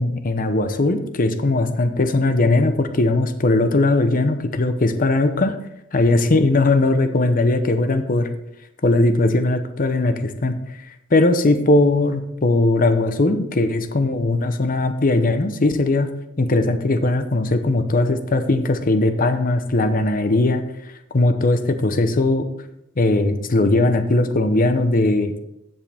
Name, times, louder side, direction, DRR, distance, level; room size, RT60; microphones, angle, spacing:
voice 1, 0.0-5.6 5.9-8.3 8.8-16.1 16.4-20.6 21.1-22.5 23.0-25.5, left 2 dB, 45° left, 9 dB, 0.8 m, -19 dB
15.5 x 5.5 x 3.5 m, 0.83 s
head